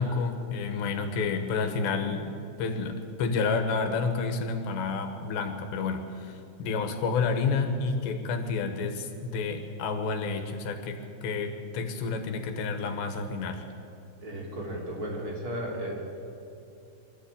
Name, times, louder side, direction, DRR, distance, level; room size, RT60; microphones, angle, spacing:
voice 1, 0.0-13.6, left 4 dB, 75° left, 6 dB, 3.3 m, -30 dB
voice 2, 14.2-16.2, equal, 20° right, -2 dB, 3.3 m, -35 dB
24.0 x 14.0 x 8.7 m, 2.7 s
omnidirectional pair, 5.4 m